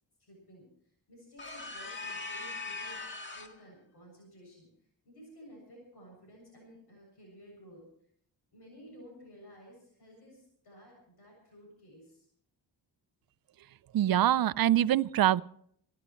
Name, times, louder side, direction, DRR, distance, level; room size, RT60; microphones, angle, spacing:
voice 1, 0.2-3.0 3.3-7.8 8.5-12.3, equal, 70° left, -1 dB, 7.5 m, -54 dB
sound 1, 1.4-3.6, left 3 dB, 25° left, 2.0 m, -40 dB
voice 2, 13.9-15.4, right 12 dB, 60° right, 16 dB, 0.5 m, -24 dB
30.0 x 13.5 x 3.1 m, 0.66 s
cardioid pair, 95°, 41 cm